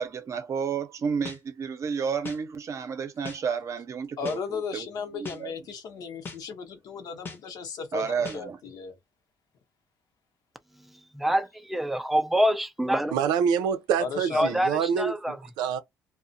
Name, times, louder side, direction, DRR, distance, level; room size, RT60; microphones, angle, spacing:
voice 1, 0.0-4.9 5.1-5.5 7.9-8.6, right 6 dB, 45° right, 0.6 m, -31 dB
sound 1, 1.3-1.4 2.2-2.4 3.2-3.4 4.3-4.4 5.2-5.4 6.2-6.4 7.3-7.4 8.2-8.4, left 4 dB, 30° left, 0.7 m, -38 dB
voice 2, 4.2-8.9 14.0-14.6, left 5 dB, 65° left, 0.8 m, -35 dB
voice 3, 11.1-13.1 14.3-15.4, equal, ahead, 0.4 m, -25 dB
voice 4, 13.1-15.8, right 7 dB, 90° right, 0.5 m, -26 dB
2.4 x 2.1 x 2.6 m
cardioid pair, 105°, 7 cm